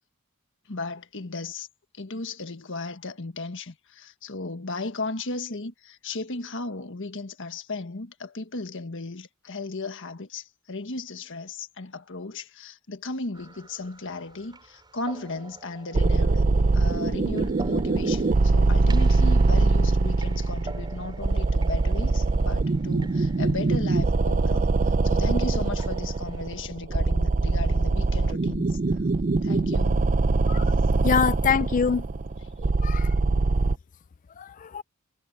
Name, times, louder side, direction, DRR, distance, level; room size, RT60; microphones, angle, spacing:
voice 1, 0.7-1.7 1.9-16.4 16.7-28.8 29.4-30.1, left 3 dB, 60° left, 1.5 m, -35 dB
sound 1, 13.3-26.6, right 3 dB, 20° right, 5.0 m, -47 dB
sound 2, 15.9-33.8, right 3 dB, 35° right, 0.5 m, -23 dB
voice 2, 31.0-32.0 32.8-33.1 34.4-34.8, left 6 dB, 35° left, 0.4 m, -24 dB
head